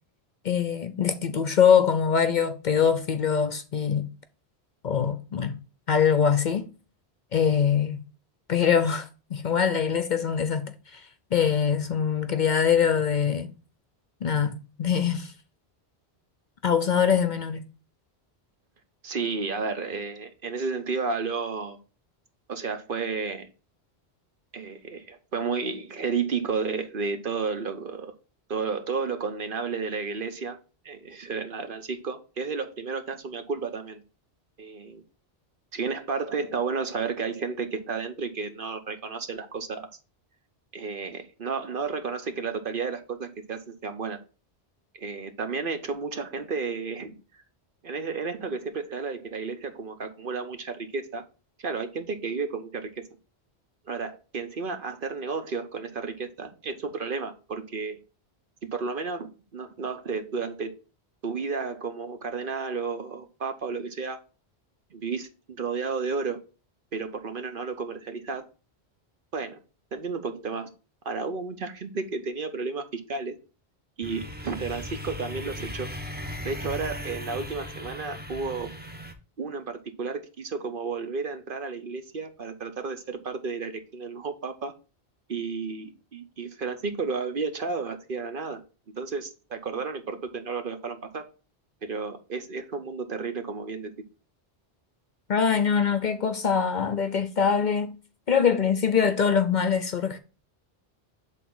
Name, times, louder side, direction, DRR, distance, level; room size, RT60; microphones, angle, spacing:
voice 1, 0.4-4.1 4.8-5.6 5.9-6.7 7.3-8.0 8.5-11.1 11.3-13.5 14.2-15.3 16.6-17.6 95.3-98.0 98.3-100.2, left 7 dB, 50° left, 0.7 m, -23 dB
voice 2, 19.0-21.8 22.5-23.5 24.5-28.1 28.5-30.6 30.8-34.0 34.6-35.0 35.7-39.9 40.7-44.2 44.9-47.2 47.8-51.2 51.6-53.0 53.9-58.0 58.6-60.8 61.2-64.2 64.9-66.4 66.9-68.4 69.3-69.6 69.9-70.7 71.0-73.4 74.0-75.9 76.4-78.7 79.4-84.7 85.3-88.6 89.0-91.3 91.8-93.9, right 4 dB, 55° right, 1.1 m, -32 dB
sound 1, 74.0-79.1, left 1 dB, 10° right, 0.9 m, -37 dB
8.1 x 3.7 x 3.8 m
omnidirectional pair, 1.1 m